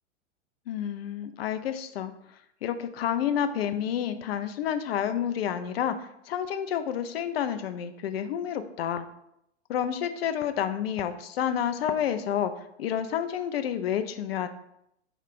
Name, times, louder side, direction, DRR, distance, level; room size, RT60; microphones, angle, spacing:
voice 1, 0.7-2.1 2.6-9.1 9.7-12.5 12.8-14.5, left 9 dB, 55° left, 9 dB, 0.5 m, -29 dB
4.7 x 2.4 x 3.6 m, 0.78 s
figure-of-eight pair, 100°, 36 cm